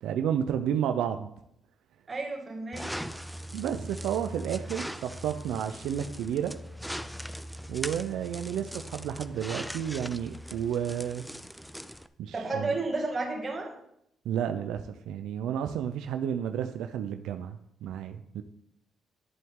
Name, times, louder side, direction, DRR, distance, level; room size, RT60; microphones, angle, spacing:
voice 1, 0.0-1.3 3.5-6.5 7.7-11.2 12.2-12.7 14.3-18.4, right 9 dB, 85° right, 7 dB, 0.5 m, -31 dB
voice 2, 2.1-2.9 12.3-13.7, right 3 dB, 35° right, 1 dB, 2.2 m, -32 dB
sound 1, 2.7-12.1, equal, ahead, 0.5 m, -40 dB
11.0 x 7.8 x 3.7 m, 0.76 s
cardioid pair, 90°, 0 cm